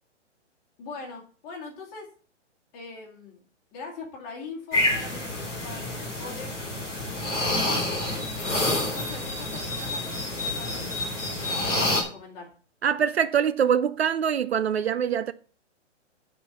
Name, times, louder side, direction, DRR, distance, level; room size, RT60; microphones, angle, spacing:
voice 1, 0.8-2.1 2.7-3.4 3.7-6.5 7.7-12.5, left 4 dB, 15° left, 1.9 m, -42 dB
sound 1, 4.7-12.0, left 2 dB, ahead, 0.5 m, -28 dB
voice 2, 12.8-15.3, right 8 dB, 60° right, 0.6 m, -24 dB
9.7 x 4.6 x 7.0 m
hypercardioid pair, 175°, 36 cm